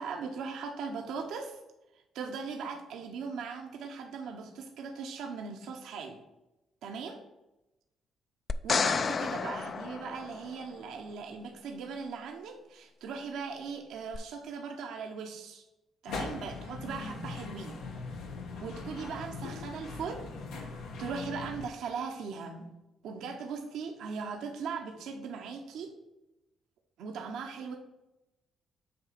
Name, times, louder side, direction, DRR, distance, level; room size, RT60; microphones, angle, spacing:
voice 1, 0.0-1.6 1.9-6.2 6.8-7.2 8.6-15.6 16.0-17.8 18.6-20.3 20.7-22.7 23.0-26.0 27.0-27.8, right 5 dB, 80° right, 3 dB, 0.8 m, -39 dB
sound 1, 8.5-10.8 14.1-14.2, left 5 dB, 45° left, 0.3 m, -31 dB
sound 2, 16.1-21.7, left 3 dB, 90° left, 1.2 m, -40 dB
7.7 x 2.9 x 5.8 m, 0.96 s
cardioid pair, 90°, 0 cm